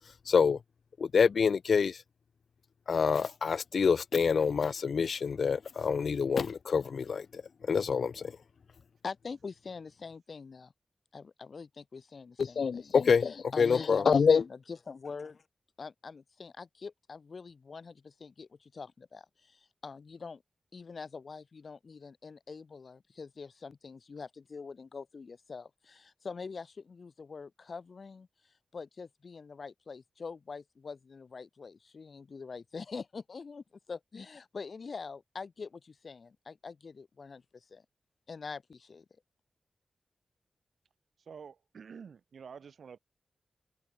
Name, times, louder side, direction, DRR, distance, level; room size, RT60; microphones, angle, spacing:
voice 1, 0.3-0.6 1.0-2.0 2.9-8.3 12.4-14.4, left 6 dB, 70° left, 0.3 m, -26 dB
voice 2, 9.0-10.7 11.1-12.9 13.2-15.5 15.8-20.4 20.7-37.8 38.3-39.0, left 5 dB, 55° left, 1.4 m, -44 dB
voice 3, 41.2-43.0, right 6 dB, 85° right, 3.8 m, -48 dB
open air
wide cardioid pair, 125°, 0 cm